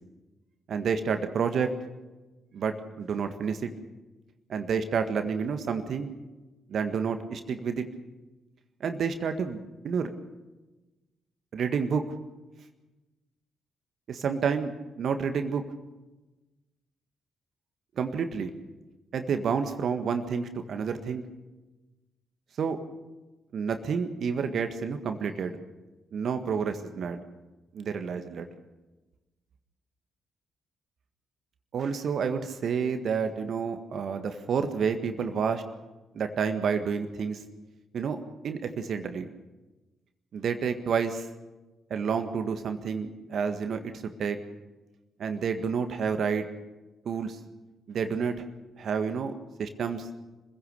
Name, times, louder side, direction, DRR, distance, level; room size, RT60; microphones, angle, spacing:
voice 1, 0.7-1.7 2.5-3.7 4.5-6.1 6.7-7.9 8.8-9.6 9.8-10.1 11.5-12.0 14.1-15.6 18.0-18.5 19.1-21.2 22.6-22.8 23.5-25.6 26.1-27.2 27.7-28.5 31.7-35.6 36.1-37.4 37.9-39.3 40.3-41.3 41.9-44.4 45.2-46.5 47.0-47.4 47.9-48.4 48.8-49.3 49.6-50.1, right 6 dB, 60° right, 8 dB, 1.7 m, -29 dB
26.0 x 16.0 x 6.8 m, 1.1 s
hypercardioid pair, 40°, 0 cm